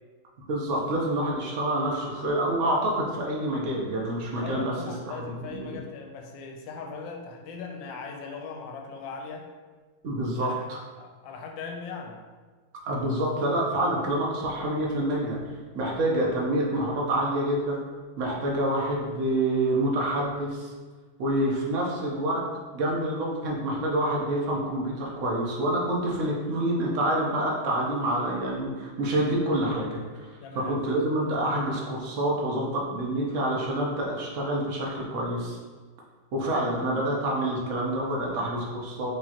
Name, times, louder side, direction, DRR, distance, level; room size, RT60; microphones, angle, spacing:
voice 1, 0.5-4.6 5.2-5.8 10.0-10.8 12.8-15.4 15.7-17.8 18.2-20.7 21.2-22.4 22.7-30.3 30.6-35.6 36.3-39.1, right 1 dB, 65° right, -3 dB, 0.7 m, -27 dB
voice 2, 4.4-9.5 10.3-10.7 11.0-12.2 21.5-21.6 30.4-30.8 31.2-31.3, left 5 dB, 75° left, 2 dB, 1.2 m, -39 dB
4.9 x 3.3 x 2.8 m, 1.4 s
omnidirectional pair, 2.3 m